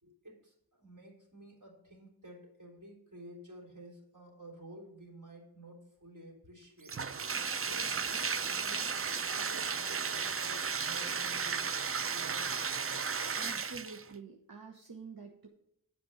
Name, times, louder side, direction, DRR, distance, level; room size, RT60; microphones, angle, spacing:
voice 1, 0.0-7.0 7.6-11.6 11.9-12.6, right 1 dB, 55° right, -1 dB, 3.5 m, -52 dB
Bathtub (filling or washing), 6.9-14.1, right 5 dB, 40° right, 0.5 m, -34 dB
voice 2, 13.4-15.5, right 4 dB, 70° right, 2 dB, 1.1 m, -47 dB
7.9 x 5.3 x 7.0 m, 0.77 s
wide cardioid pair, 45°, 37 cm